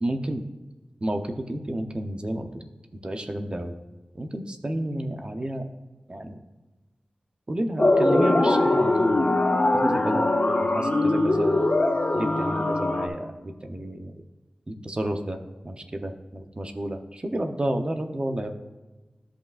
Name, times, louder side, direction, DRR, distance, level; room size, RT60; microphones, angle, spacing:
voice 1, 0.0-0.4 1.0-2.5 3.0-3.8 4.1-5.7 6.1-6.4 7.5-9.3 9.7-10.3 10.6-11.7 12.1-14.2 14.7-15.4 15.6-18.5, right 1 dB, 40° right, 6 dB, 0.8 m, -30 dB
sound 1, 7.8-13.1, left 2 dB, 65° left, 1.4 m, -22 dB
13.0 x 5.6 x 2.5 m, 1.2 s
wide cardioid pair, 70°, 3 cm